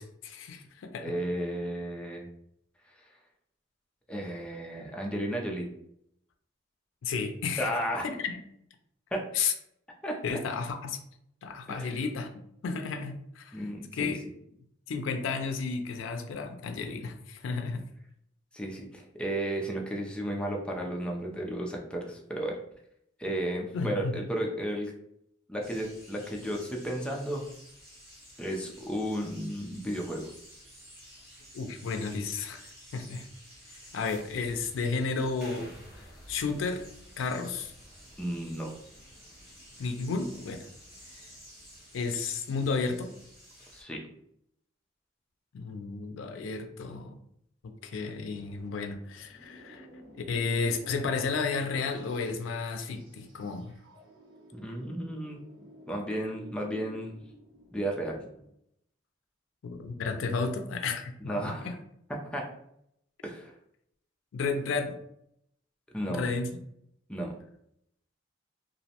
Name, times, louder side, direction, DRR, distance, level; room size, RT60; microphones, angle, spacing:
voice 1, 0.0-1.1 7.0-7.8 8.2-8.4 9.3-9.5 10.2-11.0 11.4-12.3 12.6-13.6 13.9-14.2 14.9-17.8 23.7-24.1 31.5-32.7 32.9-33.3 33.9-36.8 37.2-37.7 39.8-40.7 41.1-41.2 41.9-43.1 45.5-47.2 47.8-49.9 50.1-53.7 59.6-61.3 61.6-61.7 64.3-65.0 66.1-66.5, left 4 dB, 85° left, 6 dB, 0.4 m, -32 dB
voice 2, 1.0-2.3 4.1-5.7 7.6-8.0 9.1-9.2 10.0-10.4 11.7-12.0 13.5-14.1 18.5-22.6 23.2-24.9 25.5-27.4 28.4-30.3 38.2-38.7 43.7-44.0 54.5-55.4 55.9-57.2 57.7-58.2 61.3-61.7 62.2-62.4 63.2-63.5 65.9-66.2 67.1-67.3, right 1 dB, 5° left, 0 dB, 0.3 m, -33 dB
sound 1, 25.6-43.8, equal, 10° right, 1.0 m, -52 dB
sound 2, 48.3-58.5, equal, 70° right, 1.3 m, -52 dB
2.5 x 2.0 x 2.7 m, 0.74 s
head